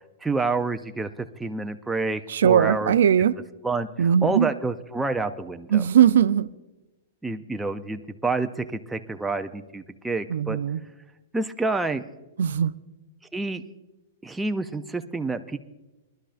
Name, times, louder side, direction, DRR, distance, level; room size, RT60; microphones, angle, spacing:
voice 1, 0.2-3.0 3.6-5.9 7.2-10.6 11.3-12.0 13.3-13.6 14.2-15.6, right 3 dB, 5° right, 0.4 m, -28 dB
voice 2, 2.3-3.3 4.0-4.5 5.7-6.5 10.3-10.8 12.4-12.7, right 9 dB, 75° right, 0.4 m, -19 dB
21.5 x 11.5 x 2.5 m
hypercardioid pair, 165°, 0 cm